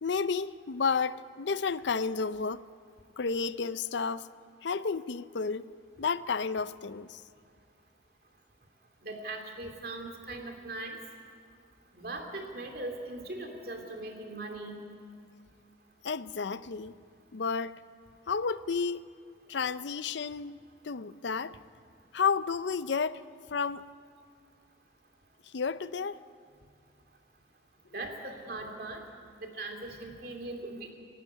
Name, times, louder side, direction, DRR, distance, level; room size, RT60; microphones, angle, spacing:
voice 1, 0.0-2.7 3.2-4.3 4.6-5.7 6.0-7.2 16.0-16.9 17.3-17.8 18.3-19.1 19.5-20.6 20.8-21.6 22.1-23.2 23.5-23.8 25.5-26.2, left 5 dB, 75° left, 0.5 m, -31 dB
voice 2, 9.0-11.0 12.0-14.8 27.9-29.0 29.4-30.9, right 2 dB, 50° right, 2.8 m, -40 dB
27.5 x 12.0 x 9.8 m
head